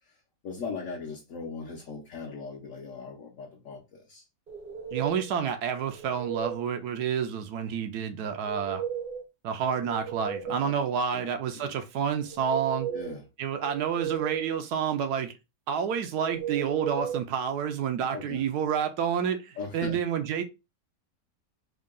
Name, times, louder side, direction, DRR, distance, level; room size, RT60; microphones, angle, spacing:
voice 1, 0.0-4.3 10.4-10.7 11.1-11.7 12.9-13.2 18.1-18.4 19.6-20.0, left 4 dB, 55° left, 1.1 m, -39 dB
sound 1, 4.5-5.3 5.8-6.7 8.3-9.3 9.6-10.7 12.1-13.2 13.6-14.6 16.2-17.2, right 8 dB, 50° right, 0.7 m, -35 dB
voice 2, 4.9-8.8 9.4-12.9 13.4-15.3 15.7-20.4, right 7 dB, 75° right, 1.1 m, -29 dB
3.7 x 2.3 x 3.6 m
omnidirectional pair, 1.8 m